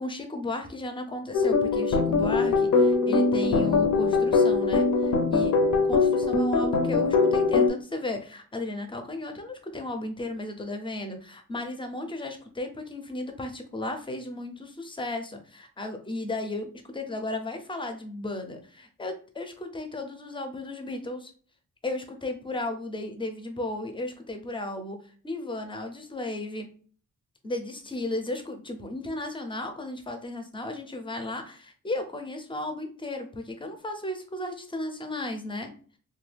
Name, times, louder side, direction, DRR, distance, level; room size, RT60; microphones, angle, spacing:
voice 1, 0.0-5.5 5.9-21.3 21.8-25.0 25.2-26.7 27.4-35.7, left 2 dB, 15° left, 6 dB, 0.4 m, -35 dB
sound 1, 1.3-7.7, left 4 dB, 70° left, 0.5 m, -22 dB
3.0 x 2.2 x 3.2 m, 0.43 s
wide cardioid pair, 170°, 31 cm